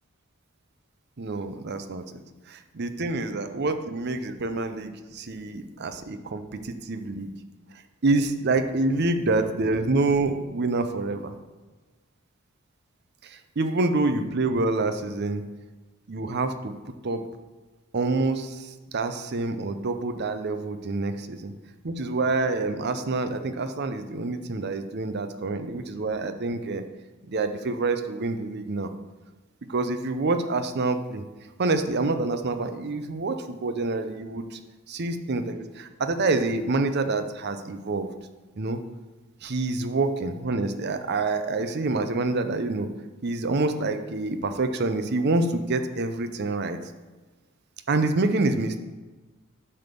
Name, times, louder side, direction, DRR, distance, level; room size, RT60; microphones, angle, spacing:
voice 1, 1.2-2.2 2.5-7.3 8.0-11.4 13.2-15.4 16.1-16.8 17.0-17.2 17.9-21.5 21.8-26.8 27.3-28.9 29.6-31.2 31.6-34.6 34.9-38.1 38.6-38.8 39.4-42.9 43.2-46.8 47.9-48.8, right 3 dB, 55° right, 8 dB, 0.6 m, -27 dB
9.6 x 3.6 x 6.8 m, 1.2 s
head